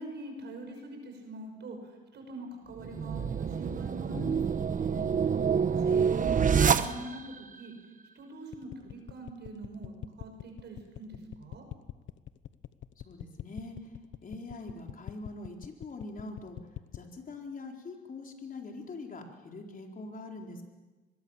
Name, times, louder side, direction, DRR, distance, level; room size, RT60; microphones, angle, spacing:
voice 1, 0.0-5.3 5.7-7.7 8.1-11.7, right 1 dB, 60° right, 4 dB, 5.9 m, -44 dB
sound 1, 2.8-7.4, right 6 dB, 40° right, 1.2 m, -27 dB
sound 2, 8.5-17.1, left 12 dB, 70° left, 1.0 m, -43 dB
voice 2, 13.0-13.9 14.2-16.6 16.9-20.6, left 2 dB, 45° left, 2 dB, 4.4 m, -43 dB
24.5 x 22.0 x 7.4 m, 1.3 s
cardioid pair, 90°, 20 cm